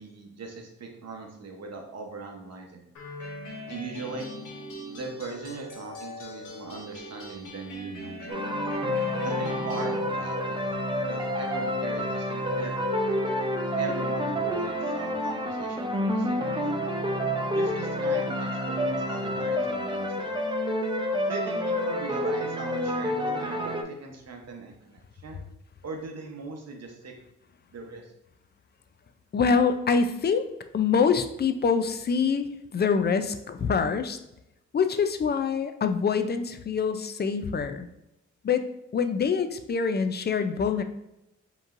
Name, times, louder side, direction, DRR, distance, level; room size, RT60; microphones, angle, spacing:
voice 1, 0.0-2.9 3.7-4.3 4.9-8.5 9.2-10.6 11.1-12.8 13.8-16.9 17.5-20.4 21.3-25.4 25.8-27.1 27.7-28.1, right 3 dB, 55° right, 2 dB, 1.0 m, -40 dB
sound 1, 3.0-10.0, left 1 dB, 90° left, 1.0 m, -41 dB
sound 2, 8.3-23.8, left 1 dB, 15° right, 0.6 m, -28 dB
voice 2, 29.3-30.5 30.7-32.5 32.7-34.2 34.7-37.9 38.4-38.6 38.9-40.8, left 5 dB, 35° left, 9 dB, 0.4 m, -25 dB
5.3 x 3.0 x 2.5 m, 0.86 s
cardioid pair, 75°, 30 cm